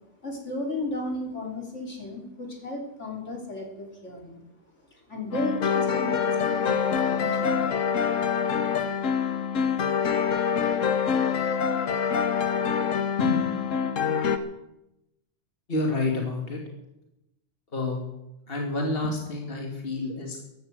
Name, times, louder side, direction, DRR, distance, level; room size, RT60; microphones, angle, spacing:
voice 1, 0.2-4.4 4.9-6.9 7.2-7.7, left 1 dB, 70° left, 1 dB, 3.5 m, -34 dB
sound 1, 5.3-14.4, left 7 dB, 85° left, 1.4 m, -25 dB
voice 2, 15.7-16.6 17.7-18.0 18.5-20.4, left 2 dB, 50° left, 0 dB, 2.7 m, -28 dB
15.5 x 11.5 x 7.7 m, 0.90 s
omnidirectional pair, 1.3 m